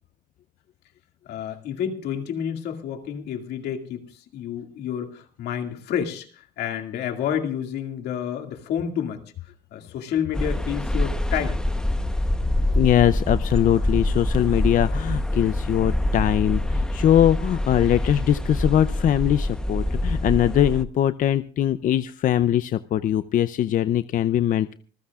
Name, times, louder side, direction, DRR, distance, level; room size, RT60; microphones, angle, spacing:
voice 1, 1.3-9.2 9.7-11.6, left 9 dB, 75° left, 4 dB, 2.2 m, -29 dB
sound 1, 10.3-20.8, left 1 dB, 5° left, 0.9 m, -25 dB
voice 2, 12.8-24.7, left 11 dB, 50° left, 13 dB, 0.5 m, -21 dB
26.0 x 14.5 x 2.4 m, 0.41 s
cardioid pair, 110°, 17 cm